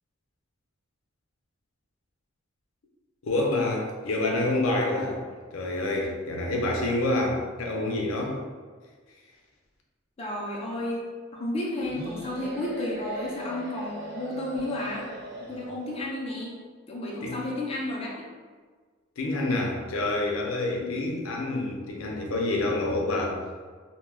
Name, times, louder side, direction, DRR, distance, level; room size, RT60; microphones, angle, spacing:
voice 1, 3.2-5.2 5.5-8.4 17.2-17.4 19.2-23.4, left 2 dB, 85° left, 0 dB, 0.5 m, -27 dB
voice 2, 10.2-11.1 11.3-15.0 15.5-16.5 16.9-18.2 20.8-21.0, left 1 dB, 30° left, -4 dB, 0.4 m, -32 dB
sound 1, 11.9-16.0, equal, 55° right, 0.7 m, -39 dB
2.2 x 2.1 x 3.2 m, 1.5 s
head